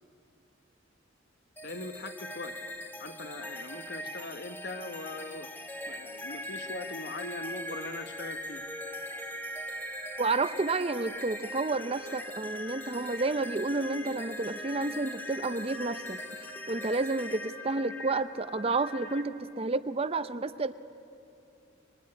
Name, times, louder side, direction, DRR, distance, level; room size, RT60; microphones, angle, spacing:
voice 1, 1.6-2.7 3.0-5.5 5.9-8.7, left 2 dB, 55° left, 1.2 m, -41 dB
sound 1, 1.6-19.2, left 1 dB, 10° left, 1.2 m, -40 dB
voice 2, 10.2-16.2 16.7-20.7, right 3 dB, 30° right, 0.6 m, -30 dB
25.5 x 23.0 x 9.7 m
head